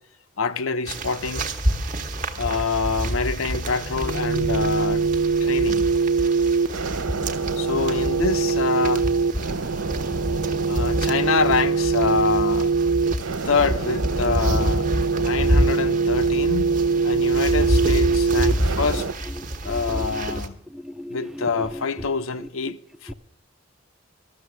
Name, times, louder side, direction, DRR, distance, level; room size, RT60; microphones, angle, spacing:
voice 1, 0.4-1.5 2.3-5.1 5.4-5.9 7.6-9.1 10.7-12.7 13.4-14.9 15.2-16.8 17.0-19.1 19.6-20.6 21.1-23.1, left 4 dB, 90° left, 0.7 m, -26 dB
sound 1, 0.9-20.5, equal, 40° right, 1.2 m, -28 dB
sound 2, 3.6-19.1, right 4 dB, 80° right, 0.6 m, -23 dB
voice 2, 19.6-20.4 20.7-21.5 23.1-23.2, left 1 dB, ahead, 0.4 m, -36 dB
13.0 x 6.7 x 9.3 m
head